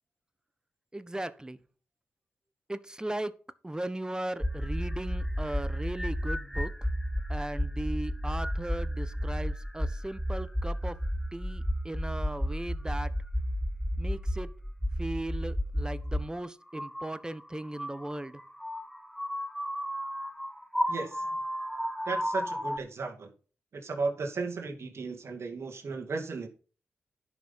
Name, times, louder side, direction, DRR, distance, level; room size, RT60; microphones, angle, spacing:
voice 1, 0.9-1.6 2.7-3.3 3.6-6.9 7.3-11.0 11.3-13.1 14.0-14.5 15.0-18.4, right 1 dB, 15° right, 1.2 m, -37 dB
sound 1, 4.4-16.2 16.7-22.8, equal, ahead, 1.3 m, -32 dB
voice 2, 20.9-21.3 22.0-23.3 23.7-26.5, right 4 dB, 60° right, 2.5 m, -35 dB
10.5 x 6.3 x 5.7 m
supercardioid pair, 40°, 5 cm